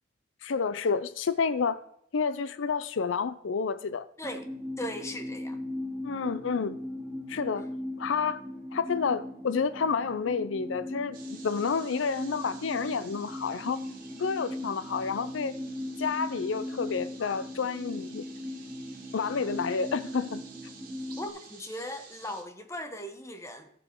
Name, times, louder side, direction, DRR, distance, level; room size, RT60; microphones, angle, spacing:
voice 1, 0.4-1.8 2.1-4.1 6.0-6.8 7.3-7.7 8.0-8.4 8.7-13.8 14.2-15.5 16.0-18.2 19.1-20.4, left 5 dB, 80° left, 0.5 m, -29 dB
sound 1, 4.2-21.3, left 1 dB, 5° right, 2.2 m, -39 dB
voice 2, 4.8-5.6 21.2-23.7, left 1 dB, 15° left, 0.9 m, -38 dB
sound 2, 11.1-22.4, right 5 dB, 45° right, 2.2 m, -52 dB
14.0 x 6.9 x 4.5 m
head